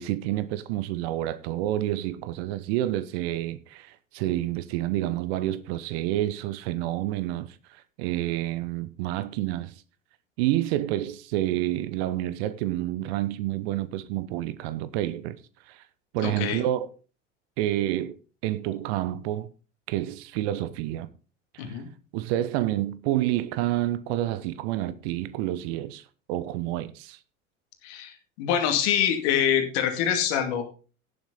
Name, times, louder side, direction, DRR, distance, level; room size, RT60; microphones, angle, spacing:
voice 1, 0.0-9.7 10.4-15.4 15.7-15.8 16.1-16.9 17.6-18.2 18.4-19.5 19.9-21.1 21.5-21.8 22.1-27.2, right 14 dB, 55° right, 0.9 m, -29 dB
voice 2, 16.2-16.6 21.6-21.9 27.8-30.6, left 9 dB, 60° left, 2.5 m, -25 dB
17.5 x 7.3 x 3.8 m
figure-of-eight pair, 70°, 38 cm